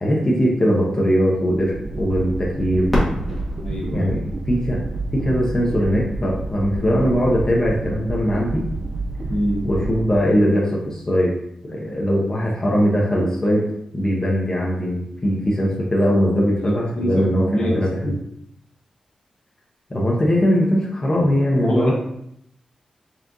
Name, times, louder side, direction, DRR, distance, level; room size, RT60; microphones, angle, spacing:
voice 1, 0.0-2.9 3.9-4.8 5.1-8.6 9.6-11.3 11.7-13.6 13.9-18.2 19.9-21.9, equal, 25° left, -4 dB, 0.9 m, -20 dB
sound 1, 1.7-10.7, right 2 dB, 50° right, 0.4 m, -29 dB
Fireworks, 2.9-5.6 6.3-6.4 7.1-7.6 9.5-9.6, equal, ahead, 1.4 m, -28 dB
voice 2, 3.6-4.1 9.3-9.7 16.6-18.2 21.6-21.9, equal, 55° left, -3 dB, 1.2 m, -24 dB
4.2 x 3.5 x 2.6 m, 0.75 s
wide cardioid pair, 95°, 2 cm